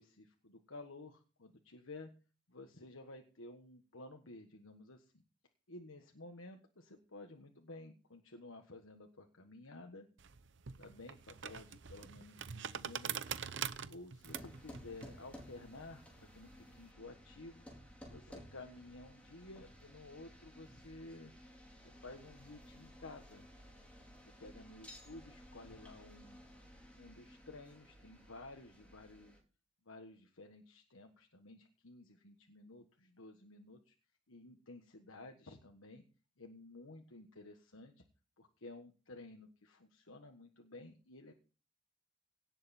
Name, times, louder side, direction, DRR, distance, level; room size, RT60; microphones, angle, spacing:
voice 1, 0.0-2.1 2.5-5.2 5.7-10.1 10.8-13.4 13.9-17.6 18.1-21.3 21.8-23.4 24.2-26.4 26.9-29.4 29.8-33.9 34.3-36.0 36.4-38.0 38.4-41.3, left 2 dB, 85° left, 4 dB, 1.5 m, -53 dB
sound 1, 10.2-16.9, right 8 dB, 60° right, 0.7 m, -44 dB
sound 2, 14.2-29.4, equal, 5° left, 4.0 m, -56 dB
17.5 x 7.7 x 4.4 m, 0.35 s
head